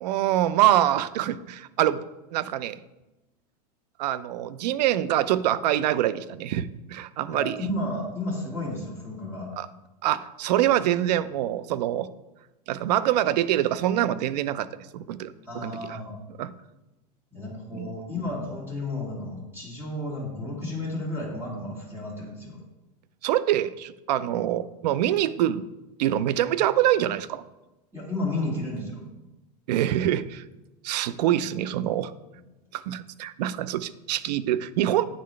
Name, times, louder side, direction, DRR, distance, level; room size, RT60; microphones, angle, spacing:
voice 1, 0.0-2.0 2.3-2.8 4.0-7.6 9.6-9.7 10.0-12.1 12.7-14.7 14.9-16.0 16.4-16.5 17.7-17.9 23.2-25.6 26.0-27.4 29.7-30.4 30.8-32.1 32.7-35.0, right 12 dB, 80° right, 16 dB, 0.4 m, -25 dB
voice 2, 7.3-9.5 15.5-16.1 17.3-22.6 27.9-29.0 32.3-32.4, left 2 dB, 10° right, -6 dB, 2.3 m, -32 dB
9.3 x 4.1 x 3.2 m, 1.0 s
supercardioid pair, 120°, 21 cm